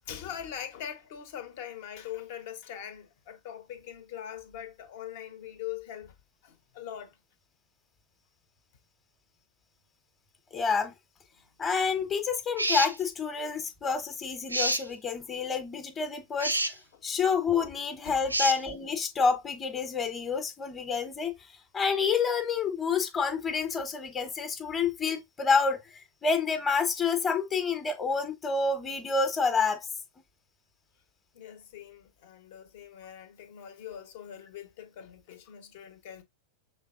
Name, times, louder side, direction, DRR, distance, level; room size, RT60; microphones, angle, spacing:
voice 1, 0.0-6.1 6.4-7.2 16.9-17.0 18.0-18.4 31.3-36.2, left 10 dB, 50° left, 1.0 m, -42 dB
voice 2, 10.5-10.9 11.6-16.6 17.0-21.3 21.7-29.8, left 5 dB, 20° left, 1.0 m, -28 dB
sound 1, 12.6-13.0 14.5-14.9 16.4-16.7 18.3-18.6, right 1 dB, 85° right, 0.6 m, -27 dB
6.1 x 3.4 x 2.5 m
figure-of-eight pair, 90°, 0 cm